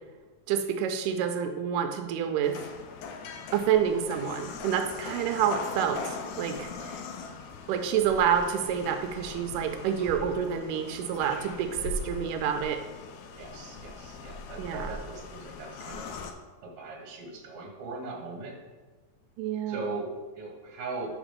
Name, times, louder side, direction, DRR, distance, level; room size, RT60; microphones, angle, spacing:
voice 1, 0.5-2.6 3.5-6.7 7.7-12.8 14.6-14.9 19.4-19.9, right 8 dB, 85° right, 6 dB, 2.2 m, -28 dB
sound 1, 2.4-16.3, left 4 dB, 75° left, 1.8 m, -40 dB
voice 2, 13.4-16.1 16.6-18.6 19.7-21.2, right 3 dB, 55° right, -1 dB, 2.1 m, -39 dB
6.2 x 5.0 x 5.2 m, 1.3 s
omnidirectional pair, 3.7 m